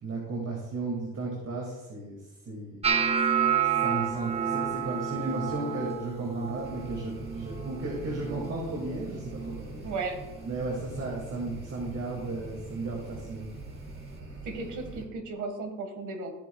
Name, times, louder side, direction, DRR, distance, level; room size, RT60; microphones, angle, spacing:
voice 1, 0.0-2.2 2.5-2.8 3.7-9.9 10.5-13.5, right 2 dB, 55° right, -2 dB, 2.3 m, -34 dB
sound 1, 2.8-8.9 9.2-9.7 10.1-10.6 11.2-11.4 13.2-13.3, right 8 dB, 20° right, 0.7 m, -30 dB
sound 2, 6.6-15.0, right 3 dB, 40° right, 2.9 m, -44 dB
voice 2, 9.8-10.2 14.4-16.3, right 3 dB, 75° right, 6 dB, 1.7 m, -35 dB
14.5 x 7.7 x 2.3 m, 1.1 s
cardioid pair, 90°, 30 cm